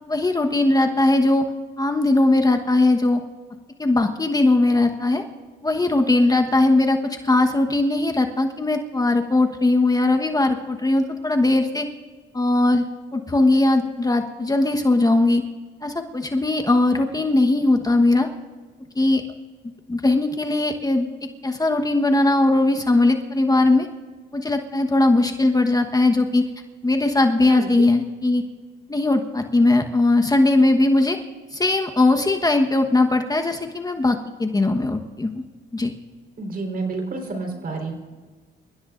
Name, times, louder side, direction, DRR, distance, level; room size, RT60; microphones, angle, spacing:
voice 1, 0.1-1.5 1.8-3.2 3.8-5.2 5.6-11.9 12.3-12.8 13.1-15.4 15.8-18.3 18.9-19.2 19.9-21.1 21.4-23.9 24.3-26.5 26.8-28.4 28.9-31.2 31.5-35.4 35.7-35.9, left 2 dB, 20° left, 5 dB, 1.2 m, -19 dB
voice 2, 36.4-37.9, right 3 dB, 50° right, 3 dB, 4.2 m, -29 dB
27.5 x 16.0 x 2.6 m, 1.4 s
cardioid pair, 90°, 20 cm